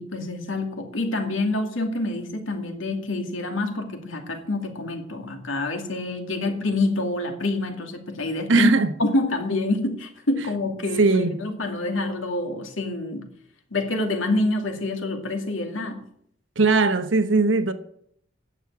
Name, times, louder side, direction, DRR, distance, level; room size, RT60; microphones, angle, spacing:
voice 1, 0.0-8.7 9.0-13.3 13.7-16.0, left 2 dB, 90° left, 2.4 m, -27 dB
voice 2, 8.5-8.9 11.0-11.4 16.6-17.7, right 3 dB, 75° right, 1.1 m, -19 dB
11.0 x 7.3 x 8.5 m
head